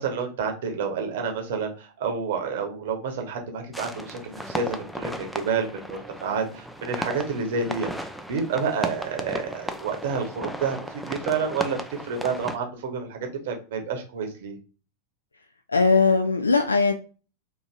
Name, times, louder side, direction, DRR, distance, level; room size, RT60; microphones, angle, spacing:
voice 1, 0.0-14.5, right 5 dB, 55° right, 4 dB, 1.0 m, -29 dB
sound 1, 3.7-12.6, equal, ahead, 0.4 m, -35 dB
voice 2, 15.7-16.9, left 4 dB, 80° left, 6 dB, 0.3 m, -19 dB
4.4 x 2.8 x 2.4 m, 0.36 s
figure-of-eight pair, 90°, 0 cm